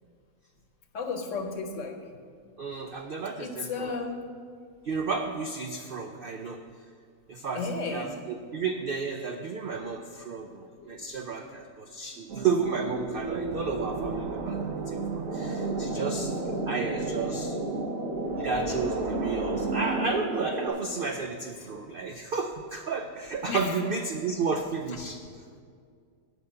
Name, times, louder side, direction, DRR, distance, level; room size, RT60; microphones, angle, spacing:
voice 1, 0.9-2.0 3.4-4.3 7.5-8.2 9.7-9.9 10.8-11.0 11.4-11.6 15.9-16.6 17.6-17.7 18.1-18.2 23.5-23.7, left 4 dB, 55° left, 5 dB, 1.1 m, -35 dB
voice 2, 2.6-3.9 4.8-6.6 7.3-14.6 14.9-16.3 16.7-17.6 18.4-25.2, right 4 dB, 80° right, 4 dB, 0.5 m, -32 dB
sound 1, 12.3-20.1, right 4 dB, 60° right, 1.1 m, -34 dB
sound 2, 15.3-20.7, right 1 dB, 35° right, 1.3 m, -33 dB
9.2 x 5.6 x 7.7 m, 2.1 s
omnidirectional pair, 1.7 m